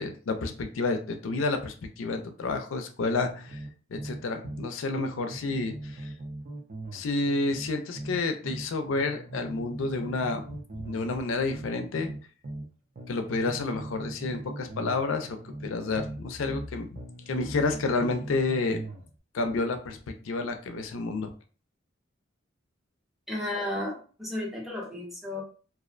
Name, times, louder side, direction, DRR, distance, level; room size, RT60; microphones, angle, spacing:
voice 1, 0.0-3.6 3.9-6.1 6.9-12.1 13.1-17.0 17.3-18.8 19.3-21.3, left 3 dB, 75° left, 6 dB, 0.4 m, -30 dB
sound 1, 3.2-4.7 5.0-8.7 9.0-12.7 13.0-16.7 17.0-19.1, right 1 dB, 45° right, 0.5 m, -40 dB
voice 2, 23.3-25.4, left 1 dB, ahead, -3 dB, 0.6 m, -33 dB
2.4 x 2.1 x 2.4 m, 0.38 s
head